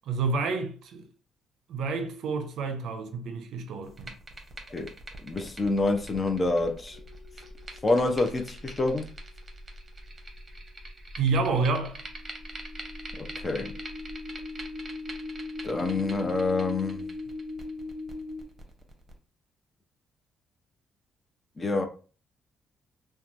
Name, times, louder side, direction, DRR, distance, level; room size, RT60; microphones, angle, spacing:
voice 1, 0.1-1.1 1.7-4.1 11.2-12.0, right 4 dB, 75° right, 0.5 m, -29 dB
sound 1, 3.8-19.1, right 2 dB, 30° right, 0.8 m, -44 dB
voice 2, 5.2-7.0 7.8-9.1 13.2-13.7 15.6-17.1 21.6-21.9, left 2 dB, 30° left, 0.6 m, -27 dB
sound 2, 6.9-9.5 11.8-18.4, left 2 dB, 70° left, 0.8 m, -40 dB
3.0 x 2.2 x 2.5 m
cardioid pair, 90°, 0 cm